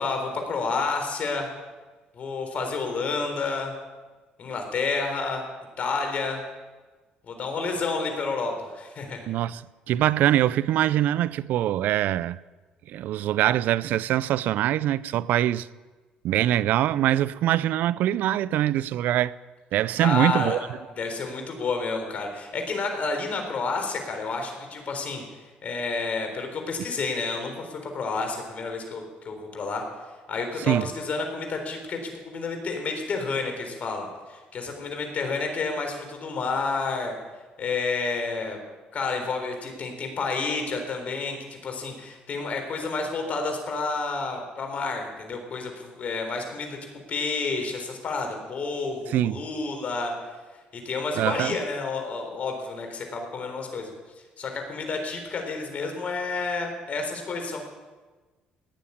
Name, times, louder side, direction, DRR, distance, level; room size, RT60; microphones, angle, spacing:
voice 1, 0.0-1.5 2.1-3.7 4.4-5.4 5.8-6.4 7.3-9.3 20.0-20.6 21.0-25.2 25.6-29.8 30.3-37.1 37.6-38.6 38.9-46.8 47.1-50.1 50.7-53.9 54.4-57.6, left 4 dB, 50° left, 3.9 m, -30 dB
voice 2, 9.3-9.6 9.9-12.4 12.9-15.7 16.2-19.3 19.7-20.6 30.7-30.9 49.1-49.4 51.1-51.6, right 12 dB, 70° right, 0.5 m, -23 dB
18.0 x 7.3 x 9.9 m
supercardioid pair, 85°, 3 cm